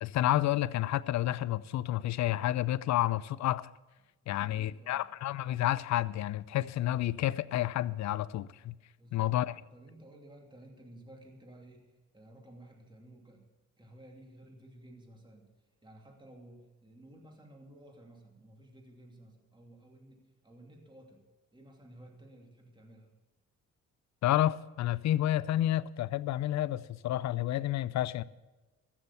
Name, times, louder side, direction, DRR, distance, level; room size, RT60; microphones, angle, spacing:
voice 1, 0.0-3.7 4.3-8.7 9.1-9.5 24.2-28.2, left 13 dB, 65° left, 0.5 m, -30 dB
voice 2, 4.2-5.0 9.0-9.4 9.7-13.5 13.8-15.5 15.8-21.2 21.5-23.1, right 1 dB, 15° right, 2.6 m, -54 dB
14.5 x 7.2 x 8.2 m
cardioid pair, 90°, 30 cm